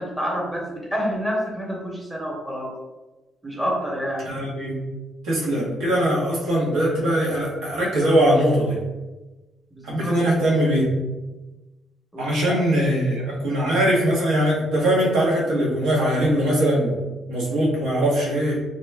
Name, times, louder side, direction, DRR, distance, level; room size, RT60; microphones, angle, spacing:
voice 1, 0.0-2.7 3.4-4.3 9.8-10.2 12.1-12.6, equal, 10° right, -2 dB, 1.0 m, -28 dB
voice 2, 4.2-4.8 5.2-8.8 9.8-10.9 12.2-16.9 17.3-18.6, right 1 dB, 85° right, -4 dB, 1.0 m, -21 dB
3.0 x 2.1 x 3.4 m, 1.1 s
cardioid pair, 90°, 0 cm